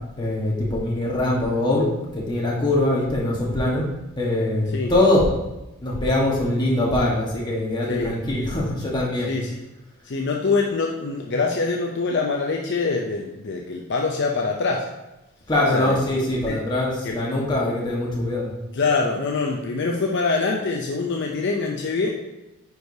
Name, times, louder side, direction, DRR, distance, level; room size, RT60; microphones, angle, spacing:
voice 1, 0.2-3.8 4.2-5.3 5.8-9.3 15.5-18.5, left 1 dB, 20° left, -4 dB, 1.4 m, -22 dB
voice 2, 9.3-9.6 10.0-14.9 15.7-16.0 16.5-16.6 17.0-17.2 18.7-22.1, left 4 dB, 55° left, 0 dB, 0.5 m, -24 dB
9.1 x 4.8 x 2.7 m, 0.98 s
head